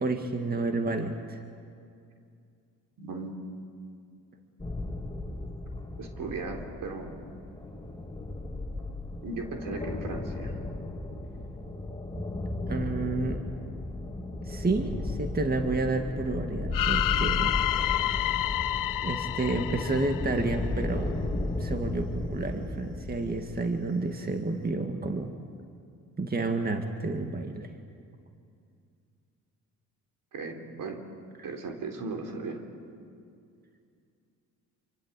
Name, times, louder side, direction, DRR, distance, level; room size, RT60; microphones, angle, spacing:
voice 1, 0.0-1.4 12.7-13.4 14.4-17.5 19.0-21.1 21.6-25.3 26.2-27.7, right 3 dB, 25° right, 5 dB, 2.0 m, -30 dB
voice 2, 3.0-3.4 6.0-7.2 9.2-10.6 30.3-31.0 31.4-32.6, right 3 dB, 65° right, 3 dB, 3.8 m, -37 dB
sound 1, 4.6-23.6, left 2 dB, 10° left, 3.1 m, -35 dB
sound 2, 16.7-20.8, left 14 dB, 70° left, 0.6 m, -29 dB
27.0 x 24.5 x 8.4 m, 2.4 s
cardioid pair, 75°, 35 cm